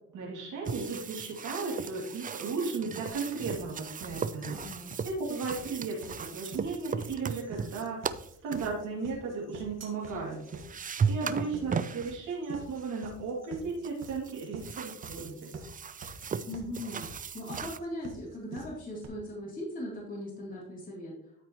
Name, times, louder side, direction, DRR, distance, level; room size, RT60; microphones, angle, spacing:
voice 1, 0.1-4.6 5.0-8.1 8.4-10.4 11.0-15.5, right 4 dB, 85° right, -3 dB, 2.6 m, -35 dB
sound 1, 0.6-8.7 10.1-10.2 10.5-12.2 12.7-13.1 13.8-17.8, right 6 dB, 30° right, 0.4 m, -36 dB
sound 2, 3.1-19.1, right 4 dB, 60° right, 1.7 m, -47 dB
voice 2, 4.5-4.9 11.3-11.6 16.4-17.1 17.3-21.1, left 1 dB, 25° left, -5 dB, 3.0 m, -39 dB
13.0 x 4.7 x 3.0 m, 0.72 s
cardioid pair, 90°, 30 cm